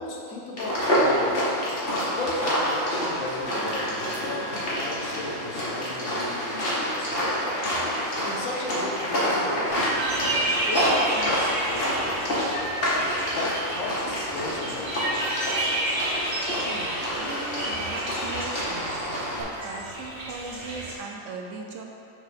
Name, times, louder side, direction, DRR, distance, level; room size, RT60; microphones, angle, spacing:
voice 1, 0.0-1.5 2.1-3.9 4.2-6.7 7.0-7.4 8.2-12.5 13.0-15.2, left 2 dB, 80° left, -2 dB, 1.4 m, -36 dB
sound 1, 0.6-19.4, equal, 45° left, 1.6 m, -27 dB
sound 2, 3.5-9.8, equal, 90° right, 1.7 m, -44 dB
sound 3, 9.7-20.9, right 1 dB, 45° right, 1.7 m, -31 dB
voice 2, 16.4-21.8, right 3 dB, 70° right, 1 dB, 1.0 m, -39 dB
6.0 x 4.5 x 5.1 m, 2.8 s
omnidirectional pair, 1.4 m